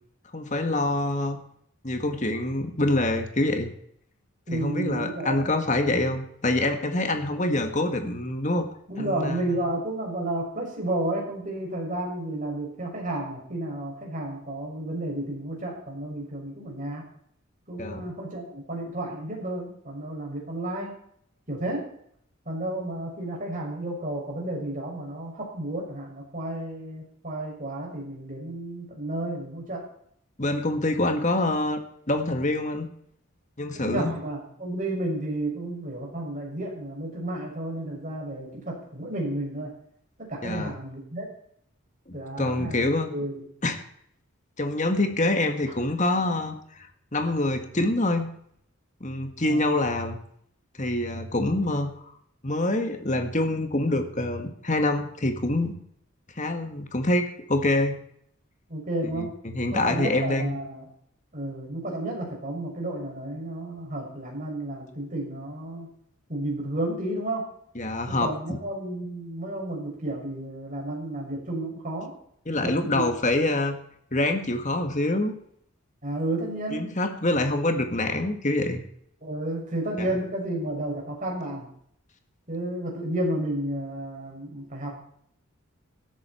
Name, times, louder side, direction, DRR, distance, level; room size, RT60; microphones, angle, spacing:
voice 1, 0.3-1.4 1.8-3.7 4.5-8.7 9.0-9.4 17.8-18.1 30.4-31.8 32.1-32.9 33.6-34.2 40.4-40.7 42.1-43.1 43.6-43.8 44.6-48.3 49.0-50.2 50.8-51.9 52.4-55.8 56.4-58.0 59.0-60.6 67.8-68.6 72.5-73.8 74.1-75.3 76.7-78.8 80.0-80.2, left 2 dB, 35° left, 6 dB, 1.7 m, -26 dB
voice 2, 4.5-5.4 8.9-17.0 17.7-20.9 21.5-21.9 22.4-29.8 33.7-39.7 40.3-41.3 42.1-43.4 49.4-49.7 58.7-59.3 59.7-60.8 61.3-65.9 66.3-67.4 68.1-72.1 72.5-73.0 76.0-76.9 79.2-81.7 82.5-84.9, right 1 dB, 35° right, -2 dB, 6.6 m, -32 dB
17.5 x 13.0 x 4.5 m, 0.66 s
head